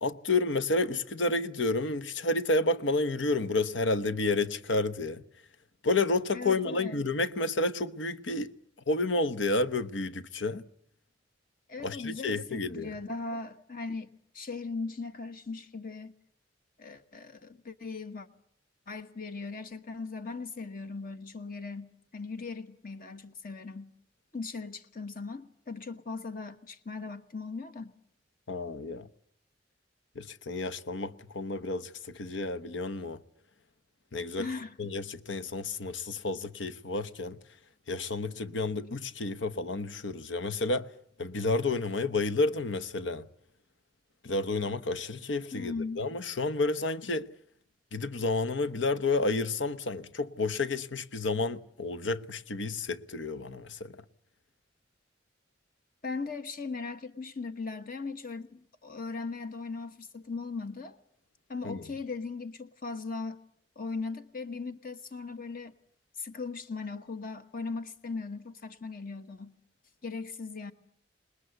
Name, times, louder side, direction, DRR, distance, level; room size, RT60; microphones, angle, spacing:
voice 1, 0.0-5.2 5.8-8.5 8.9-10.7 11.8-12.9 28.5-29.1 30.1-33.2 34.1-34.5 34.8-37.4 37.9-40.9 41.2-43.3 44.2-47.3 47.9-54.0 61.6-61.9, left 2 dB, 80° left, 1.0 m, -30 dB
voice 2, 6.3-7.0 11.7-16.1 16.8-18.3 18.9-23.9 24.3-27.9 34.4-34.8 45.5-46.1 56.0-61.0 61.5-63.4 63.7-65.7 66.2-69.5 70.0-70.7, left 4 dB, 50° left, 1.2 m, -38 dB
26.5 x 20.5 x 8.0 m
head